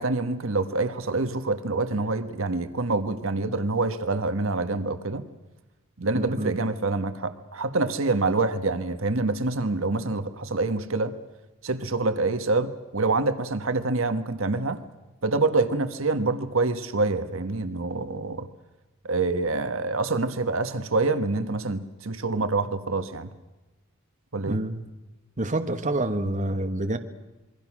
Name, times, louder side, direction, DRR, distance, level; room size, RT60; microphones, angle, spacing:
voice 1, 0.0-5.2 6.0-11.1 11.6-14.8 15.2-18.5 19.0-23.3 24.3-24.6, right 3 dB, 70° right, 10 dB, 1.4 m, -26 dB
voice 2, 6.1-6.5 24.5-24.8 25.4-27.0, right 1 dB, 40° right, 7 dB, 1.4 m, -27 dB
27.5 x 22.0 x 6.2 m, 1.1 s
head